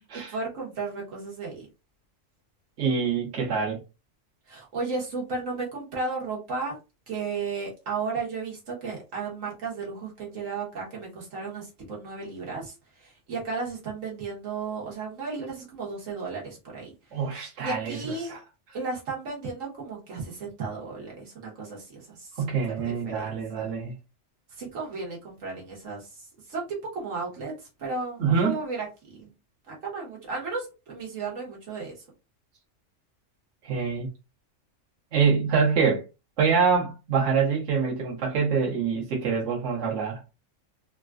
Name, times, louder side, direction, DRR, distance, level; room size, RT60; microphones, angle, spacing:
voice 1, 0.3-1.7 4.5-6.8 7.1-16.9 17.6-18.3 18.7-22.5 22.8-23.3 24.6-27.5 27.8-29.3 29.7-31.9, right 4 dB, 90° right, 1.6 m, -34 dB
voice 2, 2.8-3.8 17.1-18.4 22.4-23.9 28.2-28.6 33.6-34.1 35.1-36.0 36.4-40.2, right 5 dB, 70° right, 1.3 m, -25 dB
3.6 x 2.4 x 2.4 m
omnidirectional pair, 1.3 m